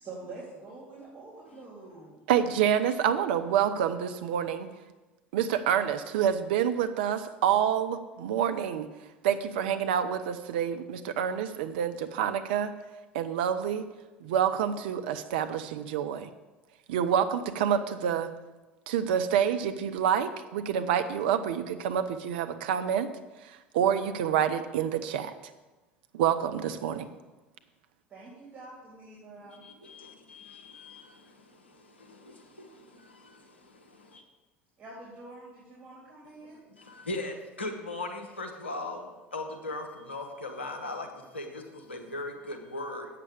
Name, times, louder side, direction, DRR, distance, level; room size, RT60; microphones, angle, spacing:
voice 1, 0.0-2.2 28.1-29.6 34.8-36.6, right 3 dB, 30° right, -6 dB, 3.3 m, -46 dB
voice 2, 2.3-4.7 5.3-8.9 9.2-12.7 13.1-13.9 14.2-16.3 16.9-18.3 18.9-23.1 23.4-25.3 26.1-27.1, right 9 dB, 65° right, 9 dB, 0.7 m, -27 dB
voice 3, 29.6-34.2 36.4-43.1, left 2 dB, 85° left, 3 dB, 1.2 m, -39 dB
8.4 x 6.7 x 7.0 m, 1.2 s
figure-of-eight pair, 70°, 6 cm